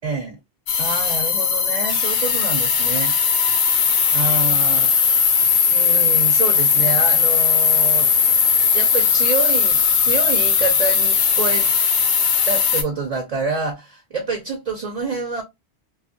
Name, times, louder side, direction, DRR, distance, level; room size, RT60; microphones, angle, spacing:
voice 1, 0.0-0.4 0.8-3.1 4.1-5.2 5.7-8.1 8.7-11.7 12.5-15.4, right 4 dB, 40° right, 0.6 m, -27 dB
sound 1, 0.7-12.8, left 6 dB, 85° left, 1.0 m, -18 dB
2.5 x 2.4 x 2.6 m
omnidirectional pair, 1.1 m